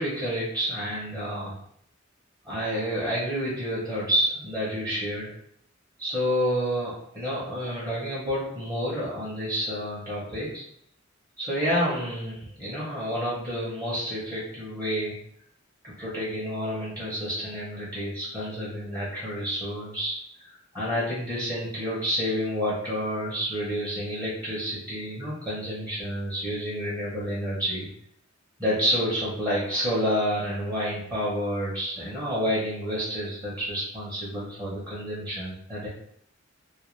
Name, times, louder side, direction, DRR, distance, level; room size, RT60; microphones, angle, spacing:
voice 1, 0.0-1.6 2.4-5.3 6.0-10.6 11.4-15.2 15.8-20.1 20.4-27.9 28.6-35.9, equal, 20° right, -8 dB, 0.7 m, -29 dB
2.3 x 2.2 x 3.0 m, 0.68 s
head